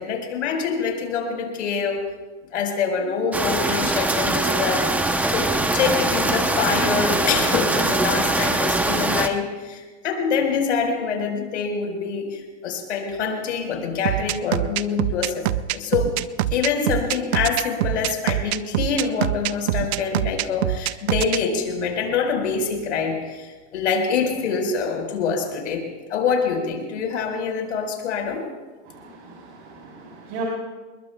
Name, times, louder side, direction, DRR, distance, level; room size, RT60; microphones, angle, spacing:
voice 1, 0.0-2.0 2.5-16.1 16.5-28.5, left 5 dB, 90° left, 3 dB, 4.6 m, -25 dB
sound 1, 3.3-9.3, right 2 dB, 5° right, 0.7 m, -22 dB
sound 2, 14.1-21.4, right 13 dB, 65° right, 0.7 m, -24 dB
voice 2, 28.9-30.4, right 4 dB, 45° right, -3 dB, 3.7 m, -37 dB
29.0 x 21.5 x 2.3 m, 1.3 s
supercardioid pair, 150°, 35 cm